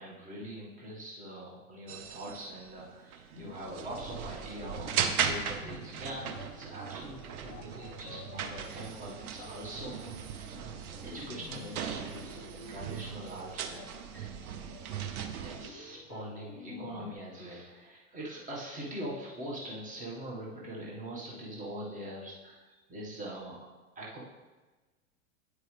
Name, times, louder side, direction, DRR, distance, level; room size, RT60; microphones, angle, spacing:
voice 1, 0.0-10.7 11.0-13.9 14.1-14.3 15.1-22.6 22.9-23.6 23.9-24.2, right 1 dB, 15° right, -4 dB, 1.6 m, -43 dB
sound 1, 1.9-15.7, right 7 dB, 65° right, 0.9 m, -38 dB
sound 2, 3.3-17.1, left 6 dB, 50° left, 0.9 m, -51 dB
9.0 x 4.8 x 3.4 m, 1.2 s
hypercardioid pair, 105°, 46 cm